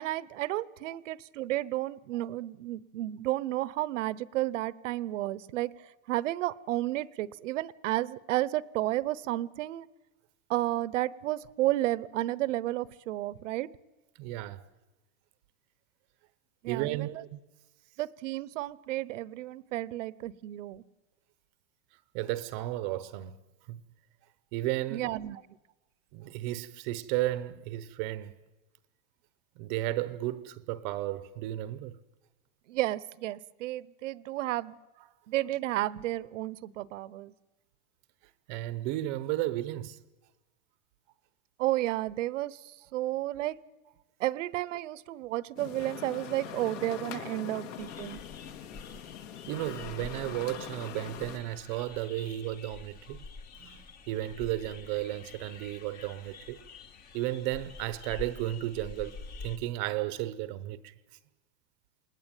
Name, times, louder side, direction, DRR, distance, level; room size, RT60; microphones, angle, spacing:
voice 1, 0.0-9.9 10.5-13.7 16.6-17.1 18.0-20.8 24.9-25.4 32.7-34.8 35.3-37.3 41.6-43.6 44.2-48.2, right 15 dB, 55° right, 0.9 m, -32 dB
voice 2, 14.2-14.6 16.7-17.4 22.1-23.3 23.7-23.8 24.5-25.0 26.1-28.4 29.6-32.0 38.5-40.0 49.5-53.2 53.6-56.6 57.1-60.9, right 15 dB, 35° right, 0.9 m, -34 dB
sound 1, 45.6-51.4, left 9 dB, 60° left, 2.6 m, -42 dB
sound 2, 47.8-59.6, left 4 dB, 20° left, 1.0 m, -48 dB
28.0 x 20.5 x 9.1 m
supercardioid pair, 165°, 44 cm